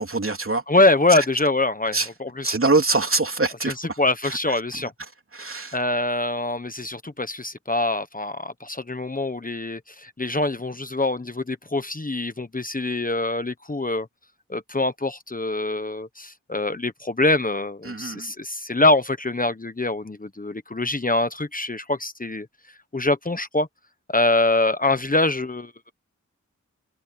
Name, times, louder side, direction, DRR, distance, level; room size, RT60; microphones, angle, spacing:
voice 1, 0.0-0.6 1.1-1.2 1.9-2.1 2.4-4.4 4.7-4.9 5.3-5.8 17.8-18.3, right 3 dB, 45° right, 3.3 m, -24 dB
voice 2, 0.7-2.5 4.0-4.9 5.7-14.1 14.5-22.5 22.9-23.7 24.1-25.7, left 2 dB, 25° left, 1.2 m, -24 dB
cardioid pair, 50°, 31 cm